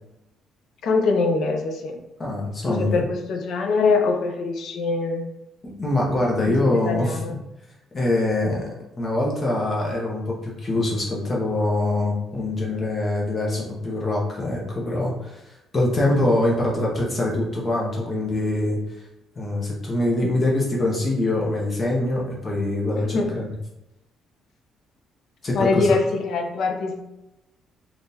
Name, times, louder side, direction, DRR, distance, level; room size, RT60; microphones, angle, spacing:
voice 1, 0.8-2.0 2.6-5.3 6.5-7.4 16.0-16.2 23.0-23.4 25.5-27.0, left 4 dB, 60° left, 4 dB, 0.5 m, -23 dB
voice 2, 2.2-3.1 5.6-7.4 7.9-8.7 9.0-15.4 15.7-18.8 19.4-23.4 25.4-25.9, left 2 dB, 25° left, -3 dB, 0.9 m, -24 dB
3.6 x 2.4 x 2.7 m, 0.90 s
cardioid pair, 150°, 0 cm